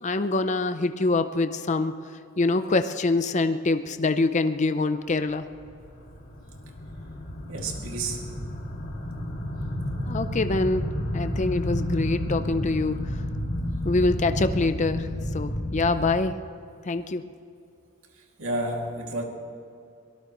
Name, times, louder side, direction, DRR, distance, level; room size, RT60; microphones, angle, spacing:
voice 1, 0.0-2.0 2.4-5.5 10.1-10.9 11.1-13.2 13.8-16.4 16.8-17.3, left 3 dB, 35° left, 10 dB, 0.5 m, -25 dB
sound 1, 5.5-16.1, left 1 dB, 55° left, 2.3 m, -31 dB
voice 2, 7.5-8.5 18.4-19.2, right 2 dB, 70° right, 1 dB, 2.4 m, -31 dB
24.5 x 18.5 x 3.1 m, 2.5 s
head